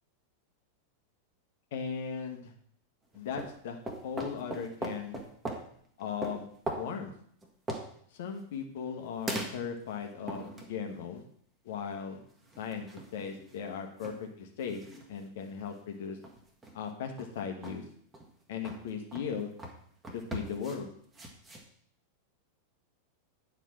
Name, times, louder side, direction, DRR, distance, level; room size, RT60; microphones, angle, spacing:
voice 1, 1.7-2.5 3.1-3.8 4.0-5.2 6.0-6.5 6.7-7.1 8.1-11.2 11.6-12.2 12.6-14.1 14.4-14.8 15.1-16.2 16.7-17.8 18.5-19.5 20.1-20.9, left 6 dB, 55° left, 4 dB, 1.3 m, -37 dB
sound 1, 3.1-3.6 3.9-5.7 6.2-6.9 7.4-7.9 9.3-9.9 10.3-10.9 12.5-13.6 14.0-14.2 14.5-15.1 15.7-15.8 16.2-16.8 17.2-17.3 17.6-17.8 18.1-18.3 18.6-18.8 19.1-19.3 19.6-19.8 20.0-20.8 21.1-21.7, right 2 dB, 15° right, 1.5 m, -40 dB
9.4 x 4.9 x 6.0 m, 0.63 s
figure-of-eight pair, 90°, 0 cm